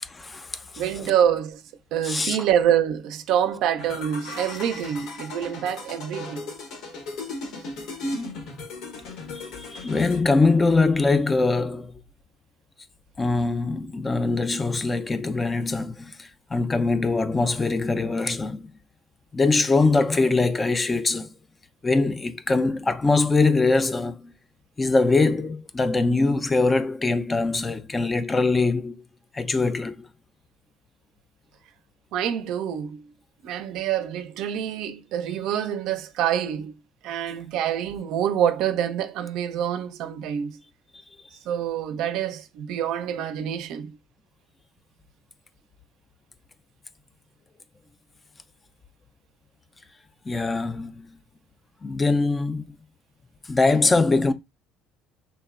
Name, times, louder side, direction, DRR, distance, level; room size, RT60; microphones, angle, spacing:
voice 1, 0.0-0.8 2.0-2.4 9.3-11.9 13.2-18.7 19.3-21.3 21.8-24.3 24.8-28.9 29.3-30.1 40.9-41.0 50.3-51.0 51.8-52.7 53.5-54.3, left 3 dB, 20° left, 0.3 m, -22 dB
voice 2, 0.8-1.6 1.9-6.5 32.1-33.1 33.4-36.7 37.0-40.6 41.5-44.0, right 9 dB, 70° right, 0.4 m, -26 dB
sound 1, 3.8-10.2, left 2 dB, 70° left, 0.9 m, -36 dB
3.1 x 2.0 x 2.3 m
supercardioid pair, 90°, 0 cm